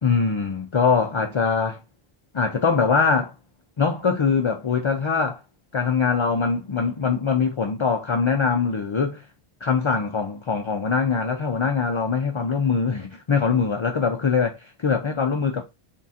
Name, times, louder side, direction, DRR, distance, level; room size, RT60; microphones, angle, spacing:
voice 1, 0.0-1.8 2.3-3.3 3.8-5.4 5.7-9.2 9.6-15.6, left 5 dB, 55° left, 0.3 m, -22 dB
3.7 x 2.5 x 4.0 m
omnidirectional pair, 1.1 m